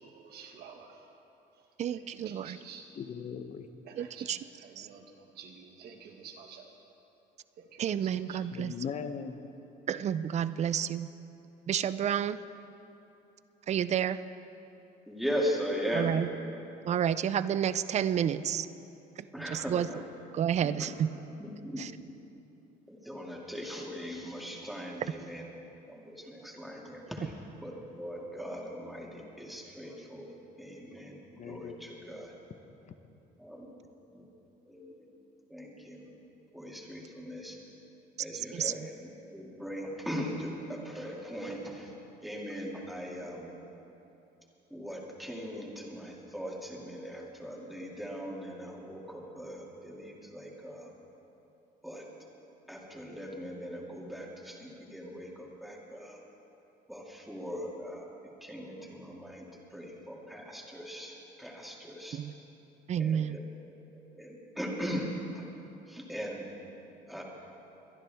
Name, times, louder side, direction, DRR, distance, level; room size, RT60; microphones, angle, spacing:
voice 1, 0.0-1.0 1.9-2.9 3.9-5.0 5.3-6.6 7.6-8.4, right 6 dB, 70° right, 3 dB, 1.6 m, -50 dB
voice 2, 1.8-2.6 3.9-4.4 4.8-4.9 7.8-8.7 9.9-11.1 11.7-12.4 13.7-14.2 15.9-16.3 16.9-18.7 19.5-19.9 20.3-21.1 21.8-21.9 38.5-38.7 62.1-62.3 62.9-63.4, right 9 dB, 40° right, 15 dB, 0.4 m, -30 dB
voice 3, 3.0-3.7 8.5-9.5 31.4-31.8 32.8-32.9, left 6 dB, 45° left, 9 dB, 0.8 m, -39 dB
voice 4, 15.1-16.2 19.3-20.0 20.6-20.9 21.4-21.9 22.9-25.5 25.9-27.3 27.6-30.3 30.6-32.3 33.4-33.7 34.1-34.2 34.7-35.1 35.5-36.1 36.5-37.6 38.2-41.9 42.2-43.6 44.7-50.9 51.8-52.1 52.7-56.2 56.9-62.2 63.0-63.4 63.9-65.1 65.3-65.4 65.9-66.5 67.1-67.2, equal, ahead, -3 dB, 2.3 m, -39 dB
23.0 x 10.5 x 3.5 m, 2.9 s
cardioid pair, 110°, 17 cm